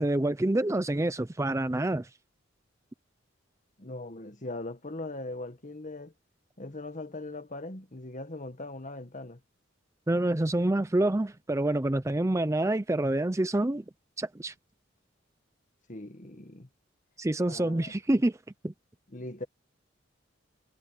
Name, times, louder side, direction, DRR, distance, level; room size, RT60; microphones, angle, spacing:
voice 1, 0.0-2.1 10.1-13.8 14.2-14.5 17.2-18.4 18.6-18.7, right 1 dB, 15° right, 0.5 m, -27 dB
voice 2, 3.8-6.1 6.6-9.4 15.9-16.7 17.4-17.9 19.1-19.4, left 2 dB, 40° left, 1.6 m, -40 dB
head